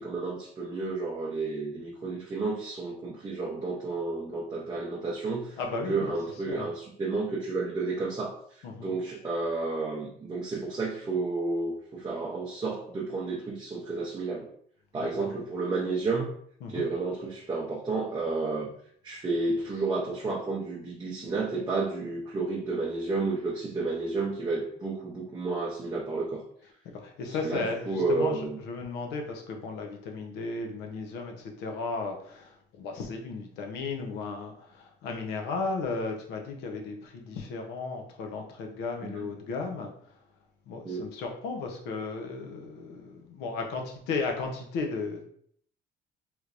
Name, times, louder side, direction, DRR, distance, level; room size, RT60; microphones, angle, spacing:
voice 1, 0.0-5.6 5.9-8.3 8.8-14.5 14.9-16.3 16.7-18.7 19.0-26.4 27.4-28.6 39.0-39.3 40.8-41.1, right 3 dB, 25° right, -3 dB, 0.6 m, -31 dB
voice 2, 5.6-6.1 6.5-6.7 8.6-8.9 15.0-15.3 16.6-16.9 27.0-39.9 40.7-45.2, left 4 dB, 90° left, 3 dB, 0.7 m, -35 dB
3.2 x 3.1 x 2.5 m, 0.64 s
cardioid pair, 110°, 17 cm